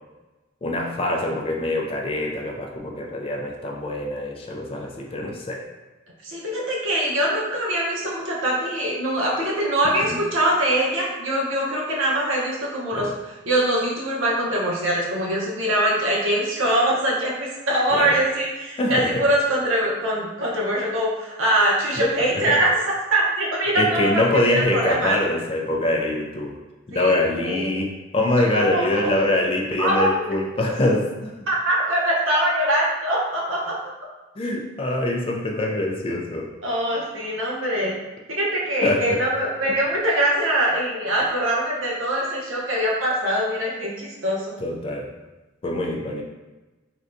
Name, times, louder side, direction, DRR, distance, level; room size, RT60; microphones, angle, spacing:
voice 1, 0.6-5.6 10.0-10.2 12.9-13.1 17.9-18.2 18.8-19.2 22.0-22.6 23.7-26.6 26.9-31.4 34.4-36.5 38.8-39.2 44.6-45.1 45.6-46.2, left 1 dB, 30° left, 1 dB, 0.3 m, -24 dB
voice 2, 6.2-13.1 13.5-22.7 23.1-24.2 24.5-25.2 26.9-27.8 28.4-29.1 29.8-30.3 31.5-33.7 36.6-37.9 38.3-44.5, right 1 dB, 80° right, -4 dB, 0.8 m, -23 dB
3.6 x 2.2 x 2.5 m, 1.1 s
head